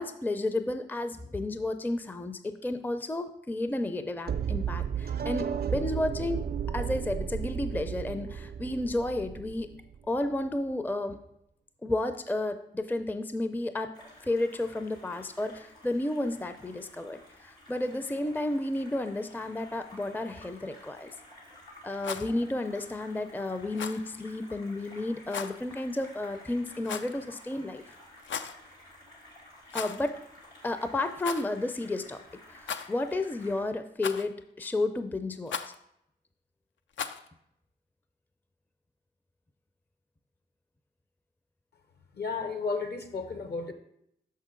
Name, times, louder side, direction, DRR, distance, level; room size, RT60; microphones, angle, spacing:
voice 1, 0.0-6.4 6.7-9.8 10.1-11.2 11.8-13.9 14.2-21.1 21.8-27.8 29.7-30.2 30.6-32.2 32.5-35.6, left 2 dB, 10° left, 0.5 m, -32 dB
sound 1, 4.3-10.2, right 7 dB, 50° right, 0.5 m, -33 dB
sound 2, 13.9-33.6, left 1 dB, 85° left, 2.3 m, -53 dB
Rattle, 21.9-22.3 23.7-24.0 25.3-25.6 26.8-27.2 28.2-28.6 29.7-30.1 30.4-30.5 31.2-31.5 32.6-33.1 34.0-34.4 35.5-35.8 36.9-37.3, left 7 dB, 70° left, 0.4 m, -36 dB
voice 2, 42.1-43.7, left 4 dB, 55° left, 0.9 m, -33 dB
6.1 x 5.4 x 3.7 m
supercardioid pair, 40°, 20 cm